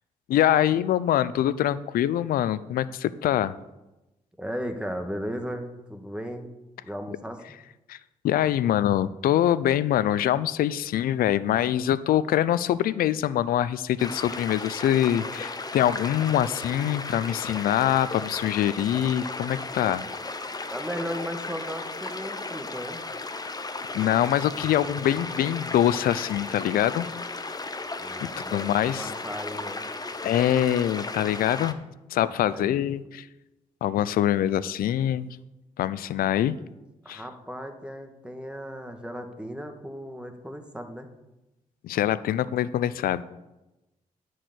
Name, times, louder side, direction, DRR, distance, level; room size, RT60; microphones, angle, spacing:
voice 1, 0.3-3.6 7.9-8.0 8.2-20.0 23.9-27.1 28.5-29.1 30.2-31.8 32.1-33.3 33.8-35.4 35.8-36.6 37.1-37.2 41.8-43.2, left 11 dB, 80° left, 17 dB, 0.5 m, -24 dB
voice 2, 4.4-6.5 6.8-7.4 20.7-23.0 28.0-29.9 32.2-32.9 37.0-41.1, equal, 5° right, 5 dB, 1.6 m, -36 dB
sound 1, 14.0-31.7, left 3 dB, 25° left, 0.9 m, -35 dB
10.0 x 4.7 x 8.0 m, 1.0 s
supercardioid pair, 55°, 15 cm